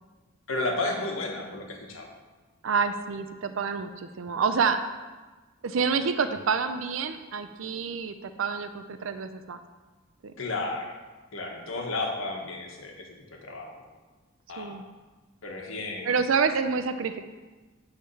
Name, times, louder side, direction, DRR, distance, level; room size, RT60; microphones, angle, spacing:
voice 1, 0.5-2.1 6.3-6.4 10.4-10.9 11.3-13.8 14.5-14.8 15.4-16.2, left 2 dB, 80° left, 1 dB, 1.4 m, -33 dB
voice 2, 2.6-4.9 5.6-9.6 10.2-10.3 14.6-14.8 16.1-17.2, right 5 dB, 70° right, 9 dB, 0.5 m, -28 dB
9.6 x 3.6 x 6.9 m, 1.3 s
head